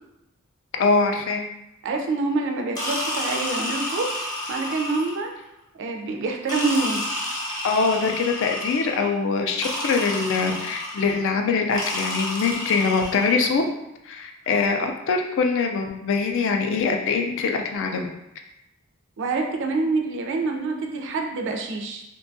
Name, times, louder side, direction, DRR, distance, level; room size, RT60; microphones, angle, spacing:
voice 1, 0.8-1.4 7.6-13.6 14.0-18.1, left 4 dB, 60° left, 4 dB, 0.3 m, -23 dB
voice 2, 1.8-4.1 4.5-5.3 5.8-7.1 19.2-22.0, right 3 dB, 55° right, 3 dB, 0.4 m, -26 dB
sound 1, 2.8-5.3 6.5-9.1 9.6-11.2 11.8-13.4, left 1 dB, 20° left, 0.7 m, -30 dB
2.6 x 2.2 x 2.5 m, 0.90 s
head